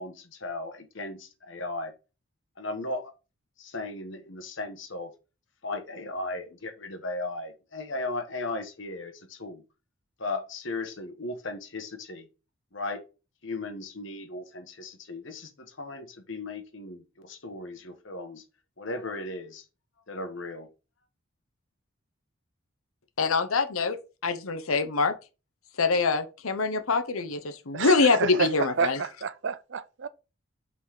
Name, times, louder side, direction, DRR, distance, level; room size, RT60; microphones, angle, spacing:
voice 1, 0.0-1.9 2.6-3.1 3.6-5.1 5.6-9.6 10.2-12.3 12.7-13.0 13.4-18.4 18.8-19.6 20.1-20.7, left 2 dB, 60° left, 1.3 m, -36 dB
voice 2, 23.2-24.0 24.2-25.1 25.8-29.0, left 4 dB, 90° left, 0.9 m, -24 dB
voice 3, 27.7-30.1, right 5 dB, 60° right, 0.5 m, -30 dB
5.6 x 4.2 x 4.8 m
head